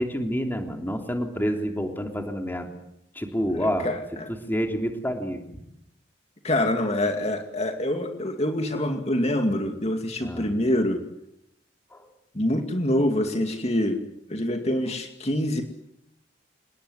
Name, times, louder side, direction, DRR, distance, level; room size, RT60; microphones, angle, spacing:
voice 1, 0.0-2.7 3.1-3.9 4.3-5.6 10.2-10.5 11.9-12.0, equal, 10° left, 4 dB, 3.3 m, -28 dB
voice 2, 3.5-4.3 6.4-11.0 12.3-14.0 14.3-15.6, left 1 dB, 35° left, 4 dB, 2.3 m, -25 dB
29.0 x 19.0 x 9.7 m, 0.82 s
head